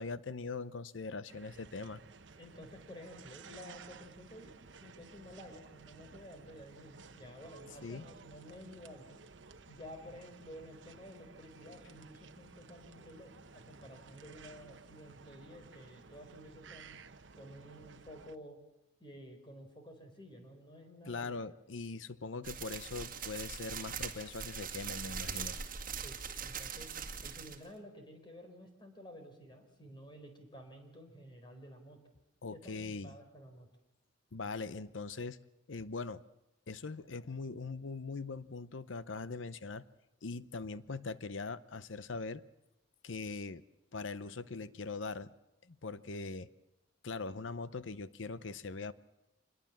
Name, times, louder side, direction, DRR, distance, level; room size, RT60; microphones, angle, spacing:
voice 1, 0.0-2.0 7.8-8.1 21.1-25.6 32.4-33.1 34.3-35.4 35.7-36.2 36.7-39.8 40.2-42.4 43.0-43.6 43.9-45.3 45.6-46.5 47.0-48.9, left 4 dB, 90° left, 15 dB, 0.8 m, -41 dB
sound 1, 1.3-18.4, right 4 dB, 70° right, 1.0 m, -55 dB
voice 2, 2.4-4.5 4.8-9.2 9.7-17.0 17.4-18.6 19.0-21.4 26.0-26.9 27.2-32.0 32.5-33.7, equal, 25° left, 5 dB, 4.3 m, -52 dB
sound 2, 22.4-27.6, right 7 dB, 50° right, 2.1 m, -41 dB
25.0 x 21.0 x 7.3 m, 0.92 s
head